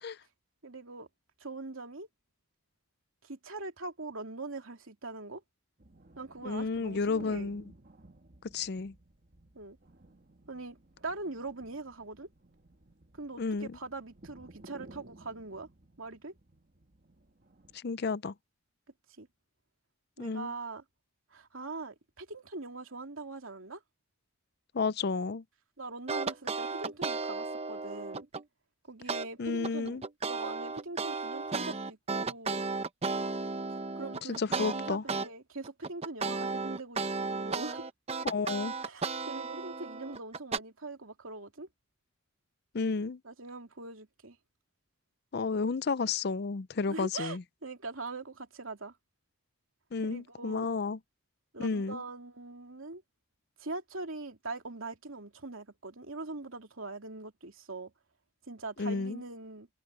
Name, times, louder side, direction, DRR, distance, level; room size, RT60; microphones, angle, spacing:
voice 1, 0.6-1.1 1.4-2.1 3.2-5.4 6.2-7.5 9.5-9.8 10.5-12.3 13.1-15.7 16.0-16.3 19.2-19.3 20.2-20.8 21.3-23.8 25.8-28.3 28.8-32.6 33.9-37.9 38.8-41.7 43.2-44.4 46.9-48.9 50.0-50.7 51.5-53.0 53.6-57.9 58.5-59.7, right 3 dB, 80° right, 2.8 m, -42 dB
sound 1, 5.8-17.8, right 1 dB, 45° right, 1.5 m, -57 dB
voice 2, 6.4-7.6 8.5-8.9 13.4-13.8 17.7-18.3 20.2-20.5 24.7-25.4 29.4-30.0 34.3-35.0 38.2-38.7 42.7-43.2 45.3-47.4 49.9-51.0 51.6-52.0 58.8-59.2, left 4 dB, 50° left, 0.5 m, -32 dB
sound 2, 26.1-28.4 29.1-29.3 29.6-35.3 35.6-40.6, right 4 dB, 30° right, 0.7 m, -34 dB
head